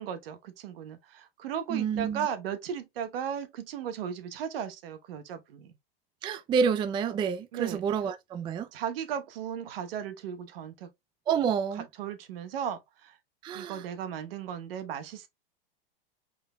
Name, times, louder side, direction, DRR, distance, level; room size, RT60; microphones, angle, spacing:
voice 1, 0.0-5.7 7.5-7.8 8.7-10.9 12.0-13.1 13.5-15.3, right 8 dB, 75° right, 1.1 m, -36 dB
voice 2, 1.7-2.3 6.2-8.7 11.3-11.9 13.4-13.8, right 6 dB, 15° right, 0.3 m, -28 dB
5.1 x 4.0 x 2.2 m
supercardioid pair, 125°, 29 cm